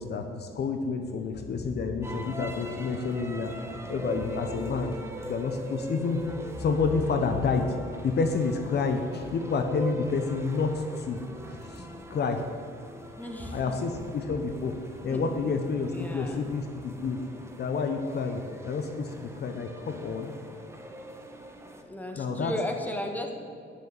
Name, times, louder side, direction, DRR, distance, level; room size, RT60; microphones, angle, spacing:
voice 1, 0.0-4.9 5.3-6.2 6.6-7.8 8.0-11.2 11.6-12.4 13.5-17.2 17.6-20.3 22.2-22.5, left 4 dB, 55° left, 6 dB, 1.0 m, -29 dB
sound 1, 1.3-16.7, left 2 dB, 35° left, 2.4 m, -47 dB
sound 2, 2.0-21.8, right 2 dB, 15° right, 1.3 m, -42 dB
voice 2, 13.2-13.7 15.0-15.3 15.9-16.4 21.8-23.3, left 1 dB, 10° left, 3 dB, 1.7 m, -35 dB
9.6 x 6.6 x 8.8 m, 2.3 s
cardioid pair, 90°, 20 cm